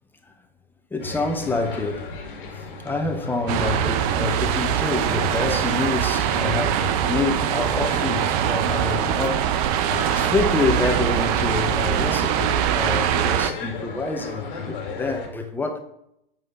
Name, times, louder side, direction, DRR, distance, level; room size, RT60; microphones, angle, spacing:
voice 1, 0.9-2.1 2.5-9.5 10.1-15.8, left 3 dB, 5° left, 0.7 m, -27 dB
sound 1, 1.0-15.3, left 4 dB, 60° left, 2.4 m, -36 dB
sound 2, 3.5-13.5, right 10 dB, 40° right, 0.6 m, -23 dB
9.0 x 3.6 x 7.0 m
hypercardioid pair, 120°, 30 cm